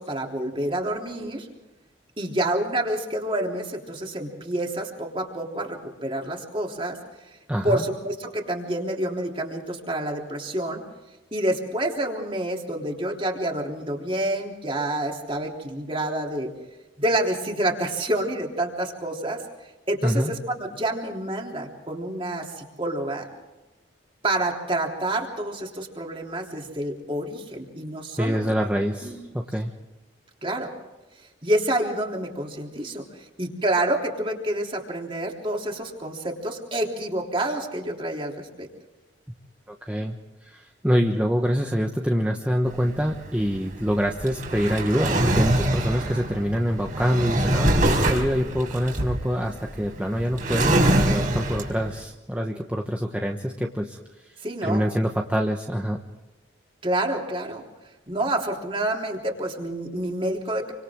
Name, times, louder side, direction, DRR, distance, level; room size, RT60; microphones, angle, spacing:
voice 1, 0.0-1.5 2.2-7.0 7.6-10.8 11.3-16.5 17.0-19.4 19.9-23.3 24.2-28.6 29.0-29.2 30.4-30.7 31.4-38.7 54.4-54.8 56.8-57.6 58.1-60.7, right 1 dB, 30° right, 1 dB, 3.5 m, -28 dB
voice 2, 7.5-7.8 20.0-20.3 28.2-29.7 39.7-40.2 40.4-56.0, equal, 5° right, 1 dB, 1.2 m, -25 dB
Drawer open or close, 42.7-52.0, right 1 dB, 45° right, 4.4 m, -24 dB
28.5 x 25.5 x 3.8 m, 1.1 s
head